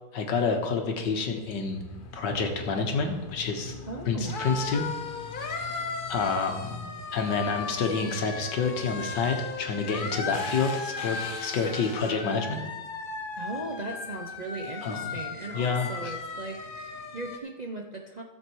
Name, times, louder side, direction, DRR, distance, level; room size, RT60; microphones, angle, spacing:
voice 1, 0.1-1.8 2.1-3.7 4.1-4.8 6.1-12.6 14.8-15.1 15.5-16.1, left 4 dB, 80° left, 4 dB, 2.0 m, -28 dB
sound 1, 1.0-17.4, left 4 dB, 45° left, 0.7 m, -37 dB
voice 2, 3.9-4.4 13.4-18.2, right 2 dB, 50° right, 1 dB, 0.5 m, -38 dB
13.5 x 7.4 x 4.7 m, 1.1 s
omnidirectional pair, 1.9 m